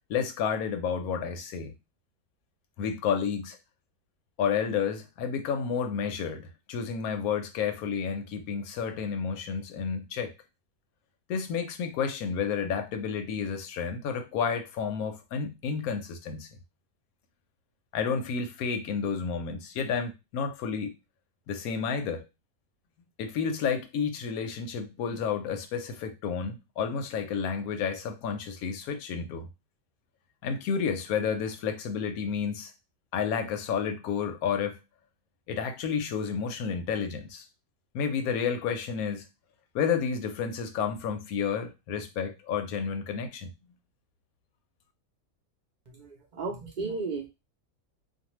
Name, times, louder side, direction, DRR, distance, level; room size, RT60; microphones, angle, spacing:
voice 1, 0.1-1.7 2.8-3.6 4.4-10.3 11.3-16.5 17.9-20.9 21.5-22.3 23.2-29.5 30.4-32.7 33.1-34.8 35.5-37.5 37.9-39.3 39.7-43.5, left 6 dB, 90° left, 1.1 m, -31 dB
voice 2, 45.9-47.3, right 4 dB, 45° right, 0.6 m, -34 dB
2.5 x 2.3 x 2.9 m
omnidirectional pair, 1.5 m